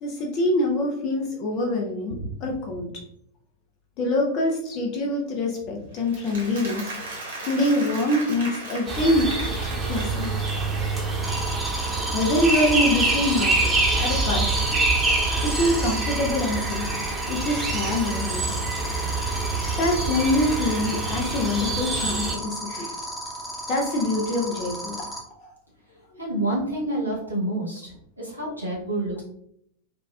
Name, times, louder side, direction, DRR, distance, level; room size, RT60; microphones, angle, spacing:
voice 1, 0.0-2.9 4.0-6.9 7.5-10.3 12.1-14.9 15.4-16.9 17.3-18.6 19.8-22.9 23.7-25.0 25.4-25.5, left 1 dB, 40° left, 0 dB, 0.6 m, -25 dB
Applause, 6.0-11.0, right 2 dB, 65° right, 1.3 m, -37 dB
sound 1, 8.9-22.3, right 3 dB, 20° right, 0.9 m, -26 dB
sound 2, 11.2-25.2, equal, 10° left, 0.9 m, -33 dB
voice 2, 26.2-27.9 28.2-29.2, right 1 dB, 90° left, -5 dB, 1.3 m, -28 dB
5.0 x 2.3 x 2.2 m, 0.71 s
figure-of-eight pair, 90°, 0 cm